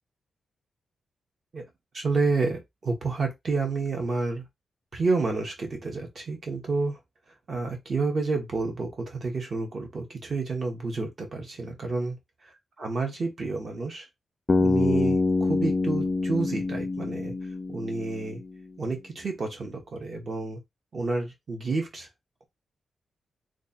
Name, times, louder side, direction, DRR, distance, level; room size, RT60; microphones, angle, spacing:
voice 1, 1.9-4.4 4.9-7.0 7.5-12.1 12.8-14.1 14.6-17.3 17.7-18.4 18.8-20.6 20.9-22.1, right 3 dB, 35° right, 1.1 m, -29 dB
Bass guitar, 14.5-18.6, left 3 dB, 20° left, 0.3 m, -26 dB
3.2 x 2.4 x 4.1 m
wide cardioid pair, 180°, 0 cm